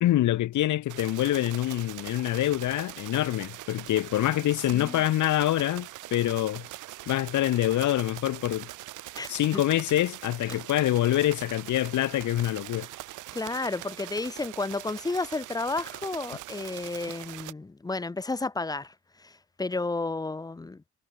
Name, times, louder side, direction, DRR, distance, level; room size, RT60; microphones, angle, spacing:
voice 1, 0.0-6.7 7.1-8.7 9.3-12.9, left 14 dB, 75° left, 1.5 m, -26 dB
sound 1, 0.9-17.5, right 16 dB, 85° right, 1.4 m, -42 dB
voice 2, 4.7-5.0 9.1-9.6 10.5-10.6 13.3-18.9 19.2-20.9, left 3 dB, 15° left, 0.6 m, -32 dB
cardioid pair, 90°, 30 cm